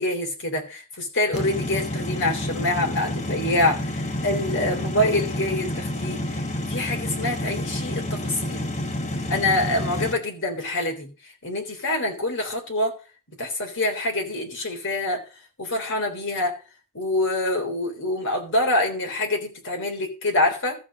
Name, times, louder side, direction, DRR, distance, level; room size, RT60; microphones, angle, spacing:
voice 1, 0.0-6.4 6.7-8.7 9.3-11.1 11.4-12.9 13.4-15.2 15.6-16.6 16.9-20.8, left 1 dB, 60° left, 2 dB, 3.6 m, -25 dB
sound 1, 1.3-10.1, left 1 dB, 30° left, 1.3 m, -29 dB
13.5 x 4.6 x 7.5 m, 0.35 s
head